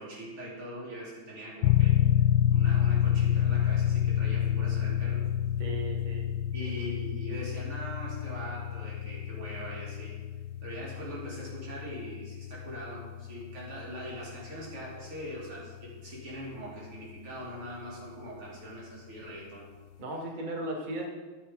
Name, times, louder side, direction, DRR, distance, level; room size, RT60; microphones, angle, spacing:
voice 1, 0.0-1.9 2.5-5.2 6.5-10.2 10.6-19.7, equal, 90° right, -7 dB, 4.1 m, -42 dB
sound 1, 1.6-16.0, left 10 dB, 75° left, 1.3 m, -29 dB
voice 2, 5.6-6.3 6.6-6.7 20.0-21.0, right 2 dB, 25° right, 0 dB, 1.5 m, -36 dB
12.5 x 7.1 x 5.2 m, 1.4 s
omnidirectional pair, 2.4 m